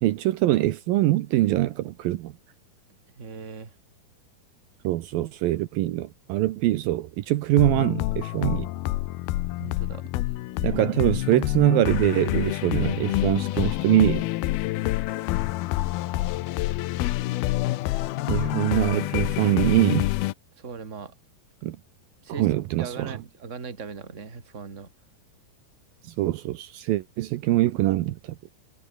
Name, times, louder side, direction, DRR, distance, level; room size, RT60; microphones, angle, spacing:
voice 1, 0.0-2.3 4.8-8.7 10.6-14.2 18.3-20.1 21.6-21.8 22.4-23.1 26.2-28.4, right 15 dB, 75° right, 2.6 m, -23 dB
voice 2, 3.2-3.8 9.6-10.1 20.6-21.1 22.2-22.5 22.8-24.9, right 5 dB, 20° right, 2.5 m, -39 dB
sound 1, 7.6-20.3, left 17 dB, 85° left, 2.7 m, -27 dB
omnidirectional pair, 4.4 m